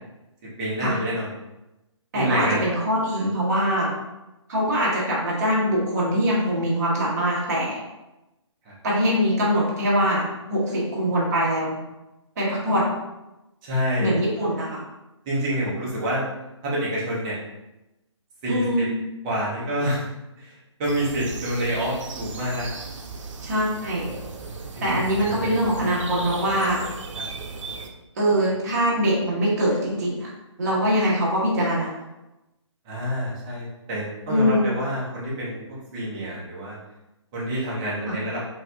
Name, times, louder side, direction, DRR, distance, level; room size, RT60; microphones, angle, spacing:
voice 1, 0.6-1.3 2.1-2.6 3.1-3.3 8.6-8.8 13.6-14.1 15.3-16.2 16.6-17.4 18.4-18.9 19.2-20.1 20.4-22.7 24.7-25.0 27.1-27.3 32.8-36.8 37.3-38.4, equal, 15° right, -7 dB, 0.5 m, -27 dB
voice 2, 2.1-3.9 4.5-7.8 8.8-11.8 12.4-12.9 14.0-14.8 18.5-18.9 23.4-24.1 24.8-26.8 28.2-30.3 30.6-32.0 34.3-34.7 38.0-38.2, equal, 35° right, -6 dB, 1.1 m, -23 dB
sound 1, 20.8-27.9, right 4 dB, 75° right, 0.6 m, -36 dB
4.0 x 2.6 x 2.2 m, 0.97 s
hypercardioid pair, 170°, 16 cm